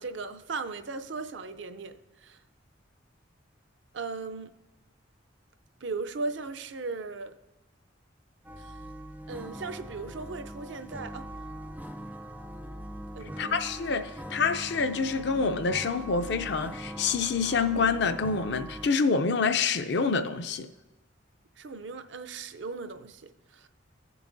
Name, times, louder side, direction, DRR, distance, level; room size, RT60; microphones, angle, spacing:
voice 1, 0.0-2.4 3.9-4.5 5.8-7.4 8.6-8.8 9.3-11.3 13.1-13.5 21.6-23.7, right 4 dB, 70° right, 0.5 m, -37 dB
sound 1, 8.4-18.9, equal, 10° right, 0.4 m, -42 dB
voice 2, 13.4-20.7, left 4 dB, 60° left, 0.5 m, -27 dB
15.5 x 6.9 x 2.6 m
head